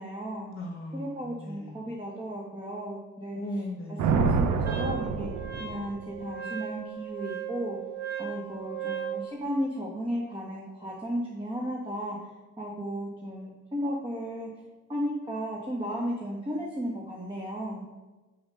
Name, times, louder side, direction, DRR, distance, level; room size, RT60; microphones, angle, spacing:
voice 1, 0.0-0.5 0.9-5.3 5.6-7.8 8.2-14.5 14.9-17.9, equal, 15° right, -2 dB, 1.5 m, -34 dB
voice 2, 0.5-1.9 3.3-4.4, left 1 dB, 35° left, 3 dB, 1.3 m, -38 dB
Thunder, 4.0-6.2, right 5 dB, 85° right, 0.8 m, -27 dB
Wind instrument woodwind instrument, 4.6-9.2, right 9 dB, 35° right, 1.7 m, -37 dB
5.7 x 5.5 x 6.8 m, 1.2 s
cardioid pair, 90°, 30 cm